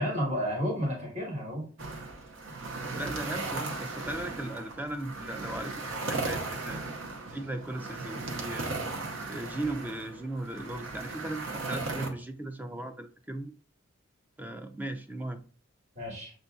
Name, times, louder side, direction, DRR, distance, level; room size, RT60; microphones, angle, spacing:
voice 1, 0.0-1.7 15.9-16.3, equal, 35° right, 1.3 m, -31 dB
sound 1, 1.8-12.1, right 3 dB, 75° right, 0.8 m, -37 dB
voice 2, 2.9-6.8 7.3-8.7 9.3-13.5 14.4-15.4, right 1 dB, 10° right, 0.3 m, -37 dB
6.6 x 2.6 x 2.3 m
head